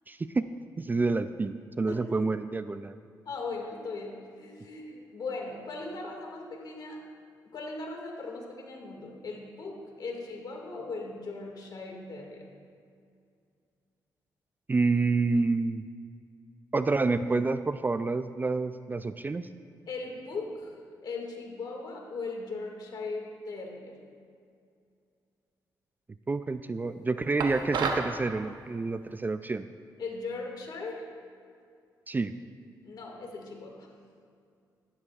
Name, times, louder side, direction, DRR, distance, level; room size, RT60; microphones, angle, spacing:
voice 1, 0.1-0.5 0.8-3.0 14.7-15.8 16.7-19.5 26.3-29.7 32.1-32.3, right 3 dB, 25° right, 11 dB, 0.3 m, -28 dB
voice 2, 1.9-2.3 3.3-7.0 7.5-12.5 19.9-20.7 21.0-24.0 30.0-31.0 32.8-33.9, left 3 dB, 60° left, 1 dB, 2.0 m, -38 dB
sound 1, 27.4-28.1, right 4 dB, 70° right, 0.9 m, -30 dB
14.0 x 12.5 x 2.4 m, 2.3 s
cardioid pair, 70°, 8 cm